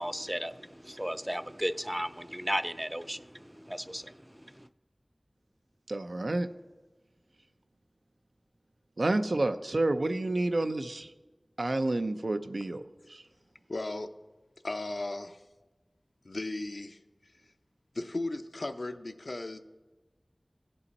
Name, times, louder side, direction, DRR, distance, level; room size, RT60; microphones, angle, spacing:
voice 1, 0.0-4.7, equal, 10° right, 13 dB, 0.4 m, -35 dB
voice 2, 5.9-6.5 9.0-11.1 11.6-12.8 13.1-13.2, right 2 dB, 75° right, 9 dB, 0.5 m, -29 dB
voice 3, 13.7-14.1 14.6-15.4 16.2-17.0 17.9-19.6, left 2 dB, 75° left, 9 dB, 0.5 m, -36 dB
16.5 x 5.5 x 4.1 m, 1.2 s
wide cardioid pair, 50°, 0 cm